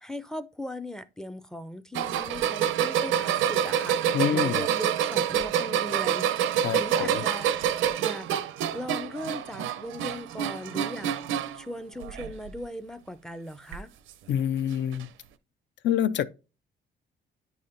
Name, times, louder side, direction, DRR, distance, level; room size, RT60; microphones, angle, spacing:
voice 1, 0.0-8.3 8.7-11.1 11.5-13.9, equal, 5° left, 0.4 m, -38 dB
sound 1, 1.9-11.6 12.0-12.6 13.7-13.8 14.9-15.0, right 10 dB, 90° right, 0.5 m, -27 dB
voice 2, 4.1-4.7 6.6-7.2 14.3-15.1 15.8-16.3, left 9 dB, 65° left, 0.4 m, -27 dB
9.3 x 4.2 x 2.5 m
cardioid pair, 90°, 20 cm